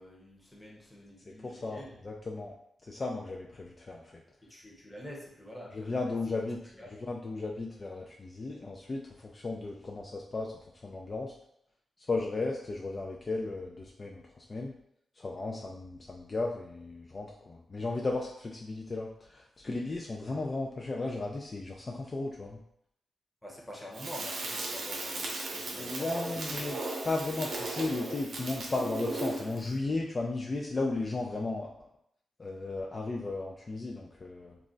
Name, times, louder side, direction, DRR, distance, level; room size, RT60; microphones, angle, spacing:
voice 1, 0.0-2.1 4.5-6.1 6.8-6.9 23.4-26.7, equal, 5° left, -2 dB, 0.7 m, -47 dB
voice 2, 1.3-2.6 2.8-4.2 5.7-11.3 12.0-14.8 15.1-22.6 25.8-26.8 27.0-31.9 32.4-34.6, left 3 dB, 35° left, -1 dB, 0.3 m, -35 dB
Crackle, 23.9-29.6, right 2 dB, 85° right, 0.6 m, -36 dB
2.3 x 2.1 x 3.7 m, 0.73 s
cardioid pair, 100°, 0 cm